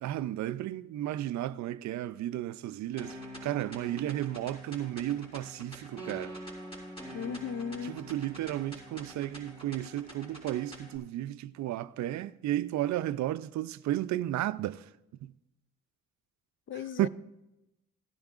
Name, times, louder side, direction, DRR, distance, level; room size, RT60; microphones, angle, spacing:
voice 1, 0.0-3.2 3.4-6.4 7.9-14.8 15.2-15.3 17.0-17.1, right 13 dB, 65° right, 0.4 m, -33 dB
sound 1, 3.0-11.0, equal, 20° left, 3.6 m, -45 dB
voice 2, 7.1-8.0 16.7-17.1, left 7 dB, 45° left, 0.4 m, -36 dB
17.0 x 10.5 x 2.4 m
cardioid pair, 90°, 30 cm